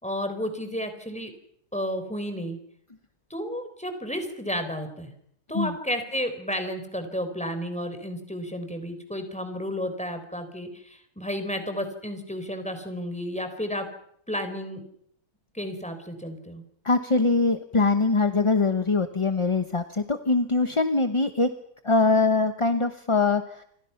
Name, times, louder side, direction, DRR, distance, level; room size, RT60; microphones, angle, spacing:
voice 1, 0.0-1.3 1.7-2.6 3.3-5.1 5.5-13.9 14.3-14.8 15.5-16.6, equal, 5° left, 8 dB, 3.9 m, -32 dB
voice 2, 16.8-21.5 21.8-23.6, left 3 dB, 25° left, 8 dB, 0.8 m, -23 dB
28.5 x 24.5 x 5.9 m, 0.70 s
omnidirectional pair, 1.7 m